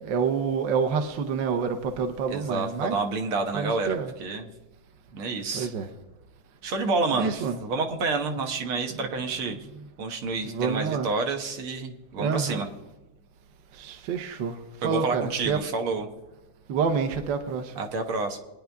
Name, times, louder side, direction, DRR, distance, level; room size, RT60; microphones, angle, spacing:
voice 1, 0.0-3.0 3.5-4.1 5.5-5.9 7.1-7.6 10.4-11.1 12.2-12.6 13.7-14.6 14.8-15.6 16.7-17.7, right 6 dB, 65° right, 6 dB, 1.6 m, -28 dB
voice 2, 2.3-4.5 5.1-5.7 6.6-9.6 10.0-12.7 14.8-16.1 17.8-18.4, right 3 dB, 80° right, 4 dB, 2.2 m, -29 dB
24.5 x 9.8 x 3.5 m, 1.1 s
omnidirectional pair, 2.3 m